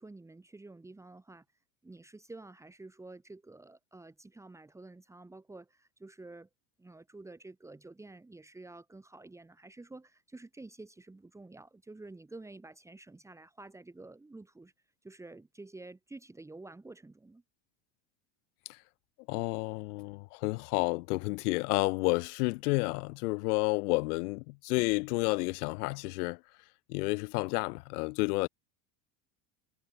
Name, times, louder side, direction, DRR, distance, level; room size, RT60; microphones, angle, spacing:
voice 1, 0.0-1.4 1.8-6.5 6.8-14.7 15.0-17.4, right 2 dB, 5° right, 3.0 m, -50 dB
voice 2, 19.3-26.4 26.9-28.5, left 25 dB, 80° left, 3.2 m, -30 dB
cardioid pair, 175°, 44 cm